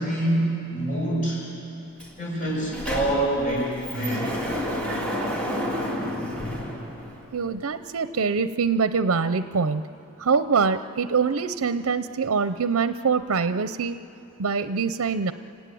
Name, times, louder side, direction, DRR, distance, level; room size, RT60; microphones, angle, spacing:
voice 1, 0.0-1.4 2.2-4.3, right 1 dB, 35° left, -5 dB, 7.4 m, -26 dB
Sliding door, 2.0-2.1 2.4-7.4, equal, 5° left, 2.9 m, -30 dB
voice 2, 7.3-9.8 10.2-14.0 14.4-15.3, right 5 dB, 75° right, 12 dB, 0.6 m, -24 dB
29.5 x 18.0 x 9.3 m, 2.9 s
head